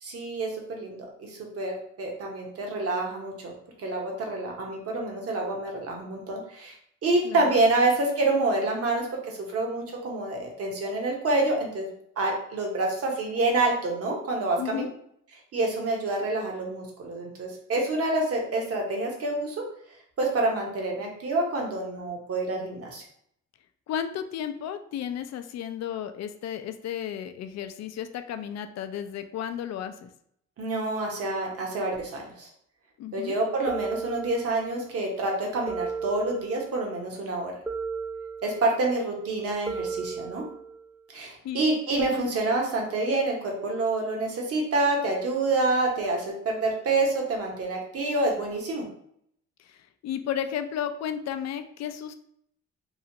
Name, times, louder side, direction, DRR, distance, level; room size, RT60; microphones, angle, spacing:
voice 1, 0.0-3.5 3.8-6.8 7.0-11.9 12.2-14.8 15.5-19.6 20.2-23.0 30.6-32.5 33.1-37.5 38.4-40.4 41.1-48.9, right 2 dB, 50° right, 0 dB, 1.0 m, -27 dB
voice 2, 7.2-7.6 14.6-14.9 23.9-30.1 33.0-33.4 41.4-41.7 42.1-42.3 49.6-52.1, left 9 dB, 60° left, 9 dB, 0.4 m, -33 dB
sound 1, 33.7-34.8 35.7-36.8 37.7-38.8 39.7-40.8, right 5 dB, 5° right, 0.3 m, -35 dB
3.1 x 2.4 x 2.8 m, 0.69 s
cardioid pair, 90°, 30 cm